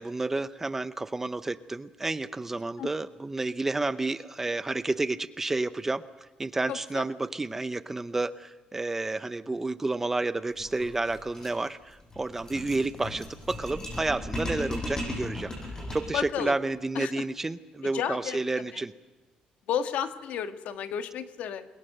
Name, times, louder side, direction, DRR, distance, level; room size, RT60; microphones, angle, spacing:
voice 1, 0.0-6.0 6.4-15.5 15.9-18.9, right 2 dB, 15° right, 13 dB, 0.7 m, -30 dB
voice 2, 6.7-7.0 16.1-16.6 16.9-17.2 17.8-18.4 18.7-18.8 19.7-21.7, left 8 dB, 75° left, 9 dB, 1.5 m, -32 dB
sound 1, 10.5-16.2, left 1 dB, 20° left, 8.0 m, -37 dB
29.0 x 22.0 x 6.7 m, 1.2 s
cardioid pair, 155°, 2 cm